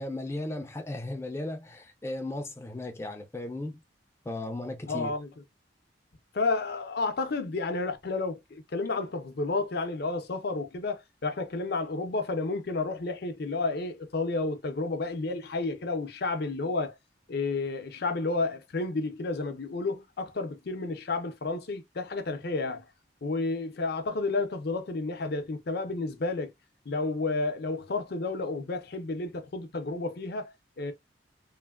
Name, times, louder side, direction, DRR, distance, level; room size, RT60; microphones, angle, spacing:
voice 1, 0.0-3.8 4.3-5.1, left 1 dB, 15° left, 0.4 m, -36 dB
voice 2, 4.9-5.3 6.3-17.0 17.3-22.8 23.2-26.5 26.9-30.9, left 3 dB, 60° left, 0.6 m, -31 dB
3.2 x 2.1 x 2.3 m
head